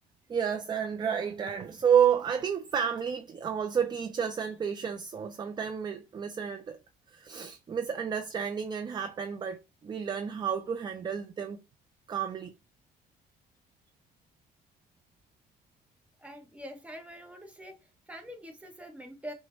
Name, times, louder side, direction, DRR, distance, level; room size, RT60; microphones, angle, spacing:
voice 1, 0.3-6.8 7.1-11.6 12.1-12.5, right 8 dB, 25° right, 0.4 m, -30 dB
voice 2, 16.2-19.3, equal, 10° right, 0.9 m, -45 dB
4.8 x 2.1 x 3.0 m
cardioid pair, 110°, 17 cm